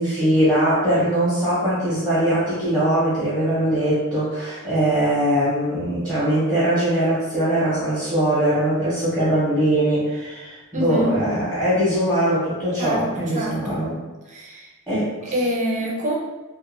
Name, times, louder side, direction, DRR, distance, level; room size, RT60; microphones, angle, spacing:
voice 1, 0.0-13.9 14.9-15.3, right 1 dB, 5° left, -11 dB, 0.8 m, -21 dB
voice 2, 10.7-11.2 12.8-13.8 14.3-14.7 15.3-16.1, equal, 35° right, -3 dB, 0.5 m, -26 dB
2.4 x 2.3 x 2.6 m, 1.2 s
head